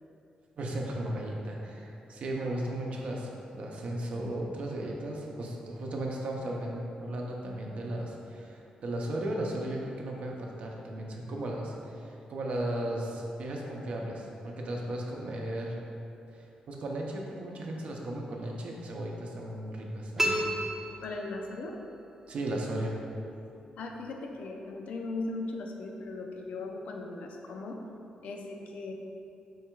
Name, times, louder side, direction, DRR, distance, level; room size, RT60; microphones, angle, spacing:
voice 1, 0.6-15.8 16.3-20.4 22.3-23.0, right 1 dB, 60° right, -1 dB, 0.6 m, -35 dB
sound 1, 20.2-21.7, right 1 dB, 15° right, 0.5 m, -31 dB
voice 2, 21.0-21.8 23.8-27.9 28.2-28.9, left 2 dB, 75° left, 2 dB, 0.4 m, -38 dB
4.6 x 2.2 x 4.4 m, 2.7 s
cardioid pair, 120°, 2 cm